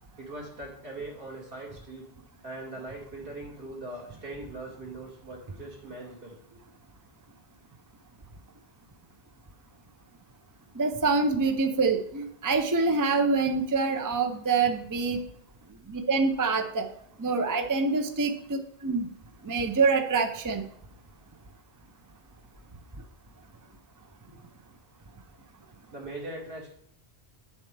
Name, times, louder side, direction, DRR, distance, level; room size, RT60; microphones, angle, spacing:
voice 1, 0.2-2.1 2.4-6.6 25.9-26.7, right 2 dB, 60° right, -4 dB, 2.7 m, -41 dB
voice 2, 10.8-15.2 15.9-16.9 17.2-19.1 19.4-20.6, right 4 dB, 25° right, 6 dB, 0.4 m, -26 dB
9.0 x 7.3 x 3.3 m, 0.69 s
omnidirectional pair, 1.1 m